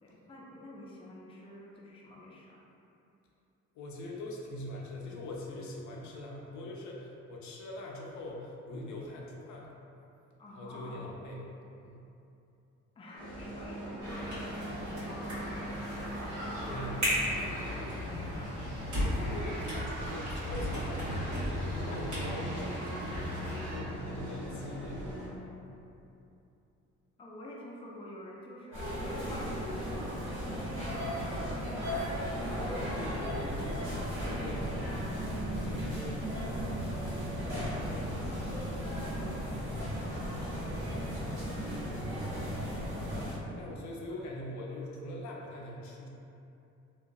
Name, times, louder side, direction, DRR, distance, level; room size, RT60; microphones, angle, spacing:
voice 1, 0.0-2.6 10.4-11.2 13.0-18.5 21.7-22.2 27.2-32.8 37.8-39.6 39.9-40.6 41.5-41.8, left 1 dB, 20° left, -4 dB, 0.4 m, -49 dB
voice 2, 3.7-9.7 10.5-12.1 16.7-17.0 18.9-21.3 21.7-22.9 23.7-25.5 25.7-25.8 32.9-34.8 35.3-37.0 39.1-39.4 40.4-40.7 41.8-42.2 43.6-46.1, left 1 dB, 70° left, -2 dB, 0.5 m, -43 dB
sound 1, 13.2-25.3, equal, 90° right, 0.8 m, -42 dB
sound 2, 14.0-23.8, equal, 70° right, 1.5 m, -35 dB
sound 3, 28.7-43.3, equal, 40° right, 1.4 m, -35 dB
2.8 x 2.2 x 2.6 m, 2.8 s
cardioid pair, 90°, 30 cm